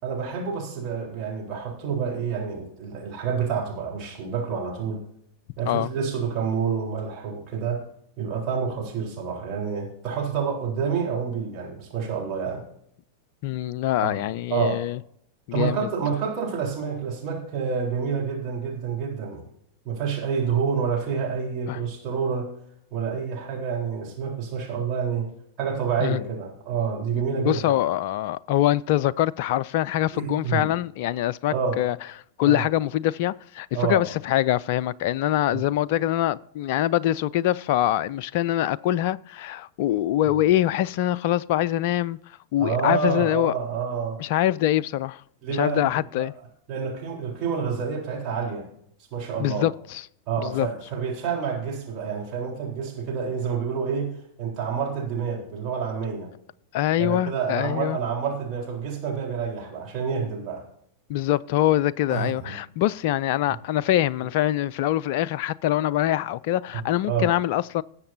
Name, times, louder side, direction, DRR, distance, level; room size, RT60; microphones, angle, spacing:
voice 1, 0.0-5.0 5.6-7.8 8.2-12.6 14.0-14.2 14.5-14.8 15.5-19.4 19.8-22.5 22.9-25.3 25.6-27.7 30.1-30.7 31.5-31.8 32.4-32.6 33.7-34.0 35.5-35.6 40.3-40.4 42.6-44.2 45.4-46.3 46.7-48.7 49.1-49.7 50.3-56.3 57.0-60.6 62.1-62.5 63.5-63.6 66.7-66.8 67.1-67.3, right 6 dB, 35° right, 4.0 m, -28 dB
voice 2, 13.4-15.0 15.5-15.9 21.7-21.8 26.0-26.2 27.4-32.0 32.4-42.2 42.5-43.5 44.2-45.2 45.5-46.3 49.4-50.0 50.4-50.7 56.7-58.0 61.1-67.8, left 13 dB, 50° left, 0.3 m, -24 dB
19.0 x 7.3 x 2.7 m
figure-of-eight pair, 90°, 0 cm